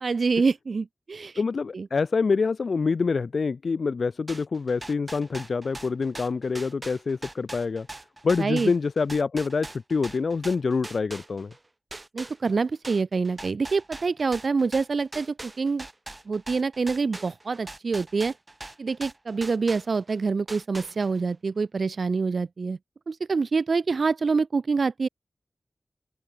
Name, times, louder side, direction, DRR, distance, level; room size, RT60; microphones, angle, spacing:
voice 1, 0.0-1.4 1.7-1.9 8.4-8.7 12.1-15.9 16.3-18.3 18.8-22.8 23.1-25.1, right 4 dB, 75° right, 0.4 m, -26 dB
voice 2, 1.4-7.9 8.2-11.5, left 4 dB, 80° left, 0.4 m, -26 dB
sound 1, 4.3-11.6 11.9-20.2 20.5-21.3, right 2 dB, 30° right, 1.3 m, -41 dB
open air
wide cardioid pair, 100°, 0 cm